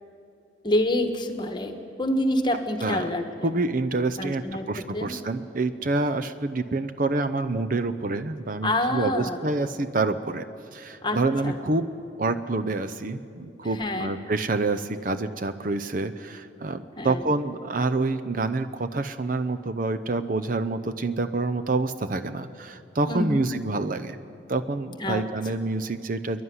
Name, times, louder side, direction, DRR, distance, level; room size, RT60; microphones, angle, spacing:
voice 1, 0.6-3.6 4.2-5.1 8.6-9.4 11.0-11.6 13.8-14.1 17.0-17.2 23.1-23.5 25.0-25.2, left 1 dB, 25° left, 6 dB, 1.4 m, -27 dB
voice 2, 3.4-10.5 10.7-11.9 12.2-24.2 24.5-26.4, right 3 dB, 45° right, 9 dB, 0.6 m, -27 dB
27.0 x 11.5 x 9.6 m, 2.6 s
head